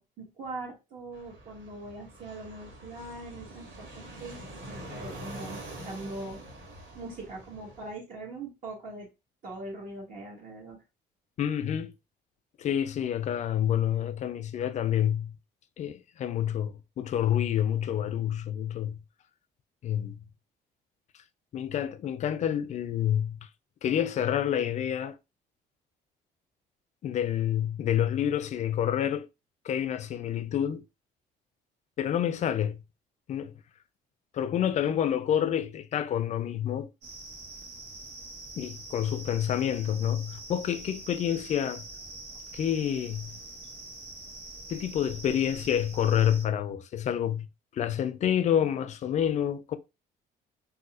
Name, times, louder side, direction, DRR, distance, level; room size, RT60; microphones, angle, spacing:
voice 1, 0.0-4.4 4.7-6.4 6.9-9.1 9.4-10.8, right 2 dB, 55° right, 1.4 m, -41 dB
Fixed-wing aircraft airplane, 1.1-7.9, right 1 dB, 90° right, 1.5 m, -45 dB
voice 2, 11.4-11.9 12.6-15.3 15.8-19.0 19.8-20.2 21.5-23.4 23.8-25.2 27.0-29.3 29.6-30.8 32.0-32.8 33.3-33.5 34.3-36.9 38.6-41.8 42.5-43.3 44.7-47.5 47.7-49.8, left 10 dB, 45° left, 0.4 m, -28 dB
sound 1, 37.0-46.4, right 2 dB, 70° right, 1.1 m, -44 dB
4.1 x 2.3 x 2.4 m
cardioid pair, 110°, 17 cm